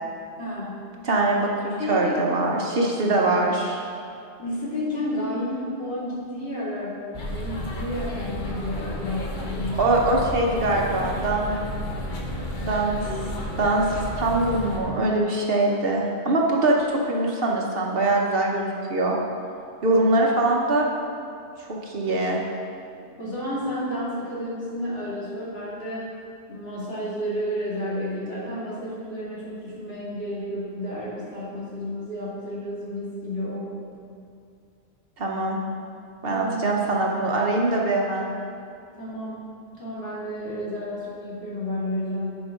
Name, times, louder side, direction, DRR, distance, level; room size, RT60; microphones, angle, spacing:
voice 1, 0.4-0.8 1.8-2.2 4.4-10.0 20.6-20.7 22.9-26.1 26.5-33.6 33.9-34.0 36.3-37.0 39.0-39.4 39.7-42.4, left 1 dB, 65° left, -8 dB, 2.4 m, -31 dB
voice 2, 1.0-3.8 9.7-11.6 12.6-13.0 13.6-16.8 17.0-19.2 19.8-20.9 21.6-22.4 35.2-35.6 36.2-38.3, right 2 dB, 60° right, -1 dB, 1.2 m, -23 dB
sound 1, 7.1-14.8, left 1 dB, 50° left, 1.1 m, -32 dB
10.5 x 5.3 x 3.7 m, 2.5 s
omnidirectional pair, 1.1 m